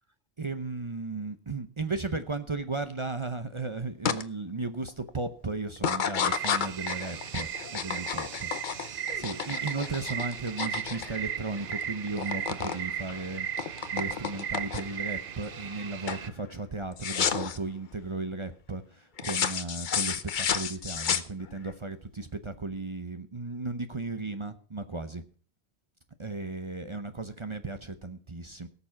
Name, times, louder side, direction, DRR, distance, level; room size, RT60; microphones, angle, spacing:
voice 1, 0.4-8.5 9.1-25.2 26.2-28.7, right 3 dB, 30° right, 9 dB, 0.7 m, -35 dB
sound 1, 4.0-4.2 4.7-5.1 5.8-11.8 12.1-12.8 13.1-15.0 15.5-15.8 16.1-16.3 17.0-17.6 19.2-21.7, left 7 dB, 50° left, 0.8 m, -31 dB
sound 2, 6.2-16.3, right 9 dB, 55° right, 0.9 m, -37 dB
18.0 x 7.0 x 5.8 m, 0.42 s
omnidirectional pair, 1.1 m